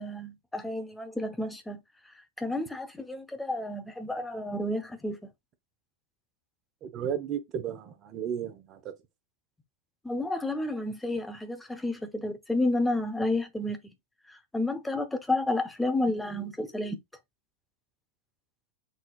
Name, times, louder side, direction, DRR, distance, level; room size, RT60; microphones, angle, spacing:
voice 1, 0.0-1.8 2.1-5.2 10.0-13.8 14.3-17.0, left 2 dB, 5° left, 0.8 m, -31 dB
voice 2, 6.8-8.9, right 8 dB, 35° right, 0.9 m, -34 dB
4.2 x 3.7 x 2.3 m
figure-of-eight pair, 90°, 0 cm